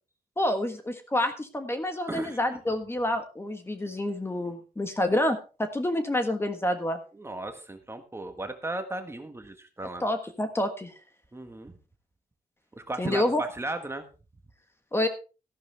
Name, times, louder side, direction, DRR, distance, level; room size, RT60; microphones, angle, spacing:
voice 1, 0.4-7.0 10.0-10.9 13.0-13.4 14.9-15.1, left 1 dB, 15° left, 7 dB, 1.5 m, -28 dB
voice 2, 2.1-2.4 7.1-10.0 11.3-11.7 12.7-14.0, right 2 dB, 15° right, 6 dB, 1.5 m, -35 dB
14.0 x 11.5 x 3.4 m, 0.33 s
wide cardioid pair, 140°, 15 cm